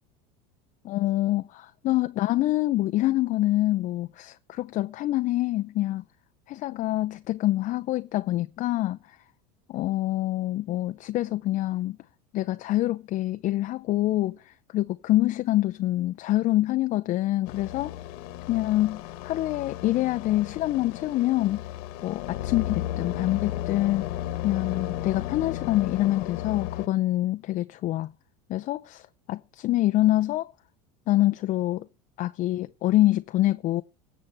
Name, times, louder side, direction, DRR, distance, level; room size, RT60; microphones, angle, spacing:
voice 1, 0.9-6.0 6.5-9.2 9.7-12.0 12.3-17.9 18.5-21.6 22.0-24.1 24.4-28.1 28.5-30.5 31.1-31.9 32.2-33.8, left 15 dB, 40° left, 0.5 m, -26 dB
sound 1, 17.5-26.9, left 13 dB, 70° left, 1.3 m, -34 dB
18.5 x 7.4 x 3.4 m
supercardioid pair, 110°, 19 cm